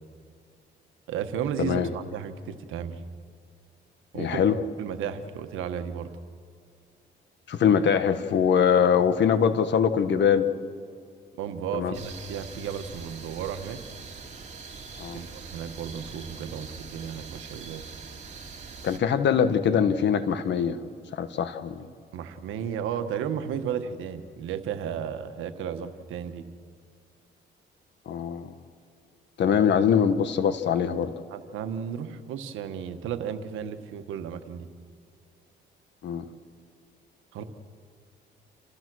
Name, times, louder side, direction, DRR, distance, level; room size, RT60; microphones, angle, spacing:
voice 1, 1.1-3.0 4.1-6.1 11.3-13.8 15.1-17.8 22.1-26.4 31.3-34.7 37.3-37.4, right 8 dB, 90° right, 8 dB, 1.3 m, -34 dB
voice 2, 4.1-4.6 7.5-10.5 11.7-12.0 15.0-15.2 18.8-20.8 21.1-21.8 28.1-28.5 29.4-31.1 36.0-36.3, left 7 dB, 65° left, 10 dB, 1.3 m, -23 dB
sound 1, 11.9-19.0, right 5 dB, 35° right, 2.8 m, -43 dB
28.5 x 15.0 x 6.3 m, 2.2 s
cardioid pair, 90°, 20 cm